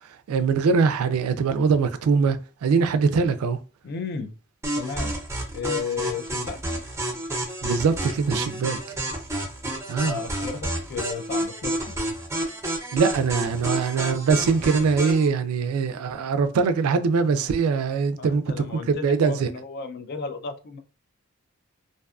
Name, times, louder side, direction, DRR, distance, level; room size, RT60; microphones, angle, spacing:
voice 1, 0.3-3.6 7.6-8.8 9.9-10.2 12.9-19.5, right 5 dB, 85° right, 0.3 m, -22 dB
voice 2, 3.8-4.3 4.8-5.1 5.5-6.6 10.0-11.7 18.2-20.8, left 5 dB, 50° left, 0.3 m, -33 dB
sound 1, 4.6-15.3, right 1 dB, 15° right, 0.6 m, -30 dB
2.5 x 2.2 x 2.4 m
head